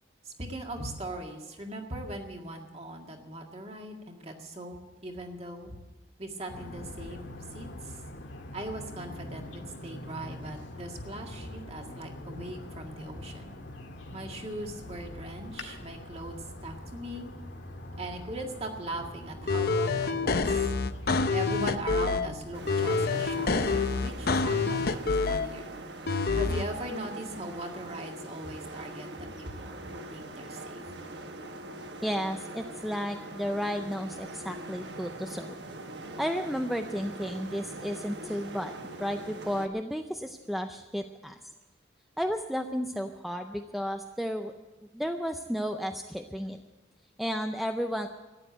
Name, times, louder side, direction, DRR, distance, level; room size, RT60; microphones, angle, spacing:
voice 1, 0.2-4.8 5.0-5.7 6.2-7.2 7.5-8.0 8.5-13.5 14.1-17.3 18.0-20.7 21.3-23.5 24.0-25.7 26.3-30.8, right 1 dB, 35° right, 2 dB, 1.9 m, -39 dB
sound 1, 6.5-25.1, left 1 dB, 90° left, 2.0 m, -44 dB
sound 2, 19.5-22.3 22.7-25.5 26.1-26.6, left 4 dB, 55° left, 0.7 m, -27 dB
sound 3, 22.5-39.7, right 1 dB, 70° right, 1.3 m, -42 dB
voice 2, 32.0-35.5 36.2-38.7 39.0-41.4 42.2-44.5 44.9-46.6 47.2-48.1, equal, ahead, 5 dB, 0.5 m, -33 dB
14.0 x 10.0 x 8.9 m, 1.1 s
head